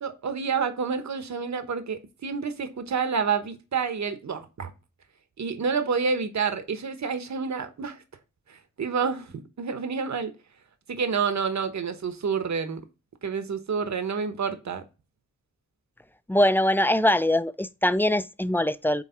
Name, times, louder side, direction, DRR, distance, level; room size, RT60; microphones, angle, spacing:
voice 1, 0.0-4.7 5.4-8.0 8.5-10.3 10.9-12.8 13.2-14.8, right 5 dB, 65° right, 1.1 m, -29 dB
voice 2, 16.3-19.0, left 1 dB, 5° left, 0.3 m, -22 dB
8.2 x 3.2 x 4.4 m
wide cardioid pair, 105°, 30 cm